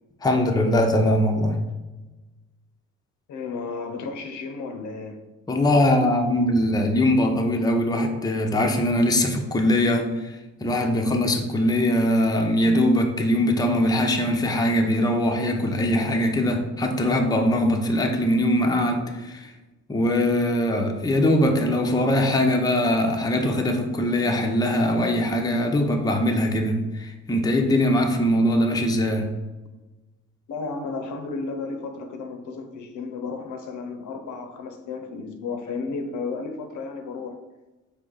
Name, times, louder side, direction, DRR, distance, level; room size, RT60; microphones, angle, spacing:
voice 1, 0.2-1.6 5.5-19.5 19.9-29.3, left 1 dB, 15° left, 3 dB, 0.6 m, -22 dB
voice 2, 3.3-5.2 30.5-37.4, left 4 dB, 75° left, 5 dB, 0.7 m, -33 dB
4.6 x 2.8 x 3.9 m, 1.1 s
cardioid pair, 90°, 30 cm